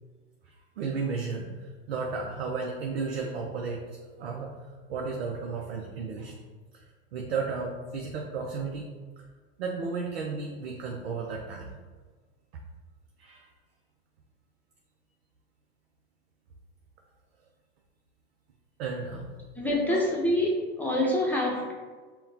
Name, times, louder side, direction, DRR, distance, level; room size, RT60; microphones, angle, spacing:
voice 1, 0.8-3.9 4.2-4.6 4.9-6.4 6.7-6.9 7.1-8.9 9.6-11.8 13.2-13.5 18.8-19.3 19.9-20.0, right 4 dB, 85° right, 0 dB, 0.6 m, -33 dB
voice 2, 19.5-21.7, left 1 dB, 5° left, -4 dB, 0.8 m, -26 dB
5.6 x 2.3 x 2.7 m, 1.4 s
hypercardioid pair, 100°, 32 cm